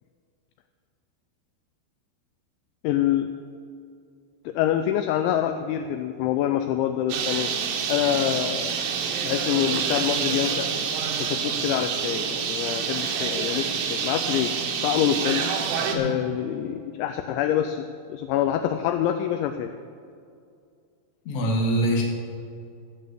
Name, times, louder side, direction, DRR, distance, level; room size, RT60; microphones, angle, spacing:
voice 1, 2.8-3.3 4.5-7.5 7.9-8.8 9.2-10.7 11.2-14.5 14.8-15.5 15.9-19.7, left 11 dB, 85° left, 7 dB, 2.7 m, -26 dB
Bird, 7.1-16.0, right 6 dB, 85° right, 3.7 m, -27 dB
voice 2, 15.9-16.3 21.3-22.0, right 1 dB, 55° left, -1 dB, 1.8 m, -24 dB
15.0 x 6.1 x 8.2 m, 2.3 s
omnidirectional pair, 5.7 m